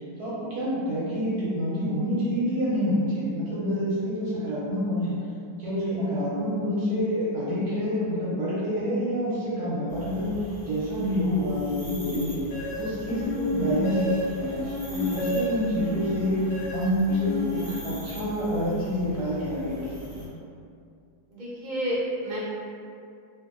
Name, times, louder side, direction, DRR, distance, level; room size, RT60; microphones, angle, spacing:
voice 1, 0.2-5.2 5.6-10.3 10.6-12.4 12.8-16.4 16.7-19.9 20.1-20.3, equal, 65° right, -9 dB, 1.0 m, -27 dB
sound 1, 9.9-20.3, left 3 dB, 10° left, 1.0 m, -43 dB
sound 2, 12.5-18.3, left 1 dB, 75° left, 1.2 m, -31 dB
voice 2, 21.3-22.4, equal, 45° right, -9 dB, 0.5 m, -31 dB
2.8 x 2.7 x 2.4 m, 2.4 s
omnidirectional pair, 2.1 m